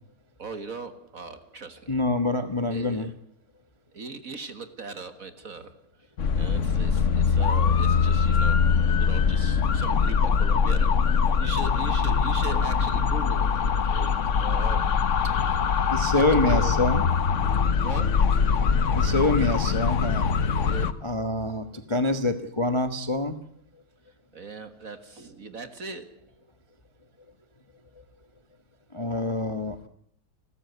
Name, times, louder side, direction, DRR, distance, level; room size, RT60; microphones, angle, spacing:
voice 1, 0.4-1.9 2.7-3.1 3.9-5.7 6.4-8.6 8.9-10.9 11.4-14.1 14.4-15.0 15.2-15.3 16.2-16.8 17.8-18.3 20.6-20.8 24.3-26.2, right 4 dB, 40° right, 10 dB, 1.7 m, -39 dB
voice 2, 1.9-3.1 15.9-17.0 18.9-20.3 21.0-23.3 28.9-29.9, left 2 dB, 20° left, 9 dB, 1.0 m, -26 dB
sound 1, 6.2-20.9, left 6 dB, 50° left, 1.0 m, -23 dB
30.0 x 13.5 x 8.1 m, 0.63 s
omnidirectional pair, 2.4 m